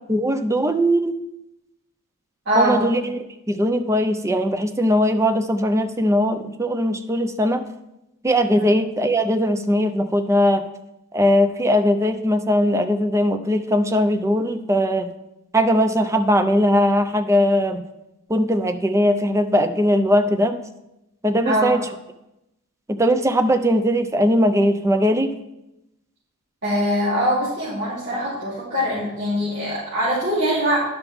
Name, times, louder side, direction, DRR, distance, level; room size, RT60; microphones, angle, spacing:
voice 1, 0.1-1.2 2.6-7.7 8.2-10.6 11.1-15.1 15.5-17.8 18.3-20.6 21.2-21.9 22.9-25.3, equal, 15° right, 8 dB, 0.5 m, -20 dB
voice 2, 2.4-2.8 8.5-8.7 21.4-21.7 26.6-30.8, equal, 55° right, -12 dB, 3.1 m, -22 dB
10.5 x 5.8 x 3.5 m, 0.90 s
head